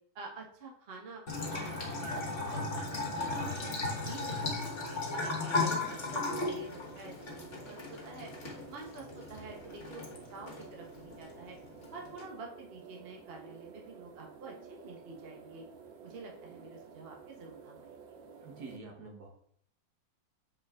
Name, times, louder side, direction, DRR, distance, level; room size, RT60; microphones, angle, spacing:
voice 1, 0.1-3.7 4.0-8.3 8.7-11.6 11.9-15.6 16.0-18.0, right 3 dB, 35° right, 0 dB, 1.3 m, -48 dB
Bathtub (filling or washing) / Trickle dribble, 1.3-12.2, left 3 dB, 40° left, 1.7 m, -36 dB
sound 1, 1.4-18.8, right 6 dB, 90° right, 1.6 m, -52 dB
voice 2, 18.4-19.3, right 3 dB, 60° right, 1 dB, 1.6 m, -46 dB
6.8 x 5.4 x 3.6 m, 0.63 s
omnidirectional pair, 2.0 m